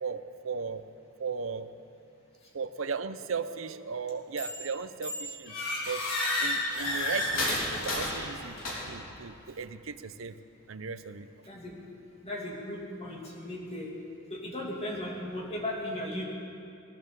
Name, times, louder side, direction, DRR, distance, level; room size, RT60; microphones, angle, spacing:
voice 1, 0.0-0.8 1.2-1.7 2.5-5.5 5.9-6.0 6.4-8.6 8.8-10.3 10.7-11.3, right 5 dB, 75° right, 12 dB, 0.7 m, -36 dB
sound 1, 4.4-4.7 5.0-9.1, left 1 dB, 80° left, 3.6 m, -31 dB
voice 2, 12.2-13.9 14.3-16.2, left 1 dB, 30° left, -2 dB, 2.6 m, -36 dB
18.5 x 11.0 x 6.9 m, 2.6 s
head